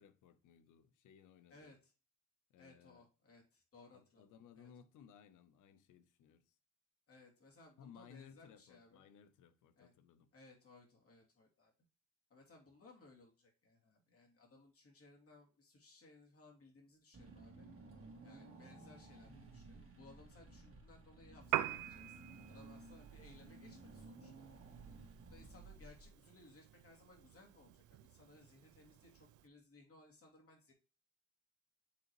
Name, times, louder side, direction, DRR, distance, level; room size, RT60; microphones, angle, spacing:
voice 1, 0.0-1.8 2.5-3.1 3.9-6.5 7.8-10.3, left 8 dB, 80° left, 0.8 m, -61 dB
voice 2, 1.5-1.9 2.6-4.2 4.5-4.7 7.1-9.0 9.8-9.9 10.3-11.7 12.3-17.7 18.2-22.2 22.5-24.5 25.3-30.7, left 2 dB, 50° left, 2.9 m, -62 dB
Car / Engine, 17.1-26.3, right 3 dB, 45° right, 2.0 m, -56 dB
Piano, 21.4-29.5, right 14 dB, 85° right, 0.5 m, -46 dB
8.5 x 3.9 x 3.1 m
cardioid pair, 90°, 30 cm